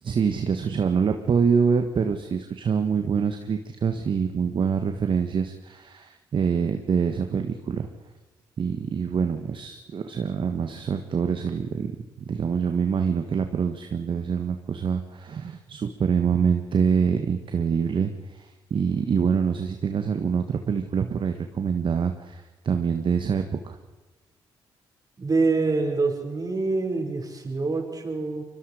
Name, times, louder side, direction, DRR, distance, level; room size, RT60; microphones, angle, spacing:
voice 1, 0.0-7.9 8.6-23.8, right 6 dB, 55° right, 6 dB, 1.5 m, -25 dB
voice 2, 25.2-28.4, right 3 dB, 40° right, 2 dB, 5.7 m, -25 dB
25.0 x 23.0 x 5.0 m, 1.2 s
hypercardioid pair, 50°, 10 cm